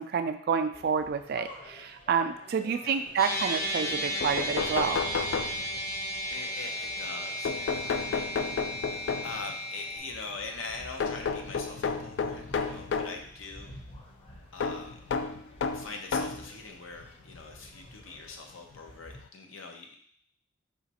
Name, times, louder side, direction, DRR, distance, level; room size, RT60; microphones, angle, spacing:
voice 1, 0.0-5.0, right 6 dB, 50° right, 8 dB, 0.3 m, -29 dB
sound 1, 0.7-19.2, left 1 dB, 30° left, 0.6 m, -52 dB
sound 2, 3.2-10.0, equal, 45° left, 1.0 m, -34 dB
sound 3, 3.9-4.0 4.2-6.0 7.5-9.5 11.0-13.2 14.6-16.5 17.3-17.4 18.8-18.9 19.2-19.3, left 5 dB, 65° left, 0.3 m, -32 dB
voice 2, 6.3-8.6 9.2-13.7 14.5-15.0 15.7-20.0, left 4 dB, 90° left, 3 dB, 0.7 m, -42 dB
4.9 x 3.0 x 2.8 m, 0.62 s
head